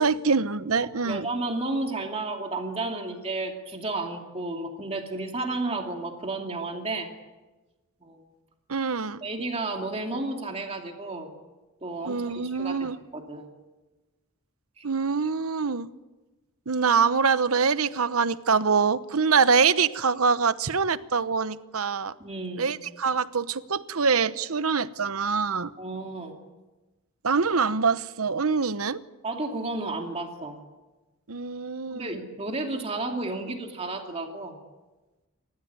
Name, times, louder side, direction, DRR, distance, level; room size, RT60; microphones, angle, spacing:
voice 1, 0.0-1.3 8.7-9.2 12.0-13.0 14.8-15.9 16.7-22.1 22.6-25.7 27.2-29.0 31.3-32.2, right 5 dB, 80° right, 14 dB, 1.0 m, -24 dB
voice 2, 1.0-7.1 8.0-8.2 9.2-11.3 11.8-13.5 14.8-14.9 22.2-22.7 25.8-26.3 29.2-30.6 31.9-34.6, right 2 dB, 30° right, 3 dB, 2.6 m, -32 dB
28.5 x 15.0 x 9.6 m, 1.2 s
head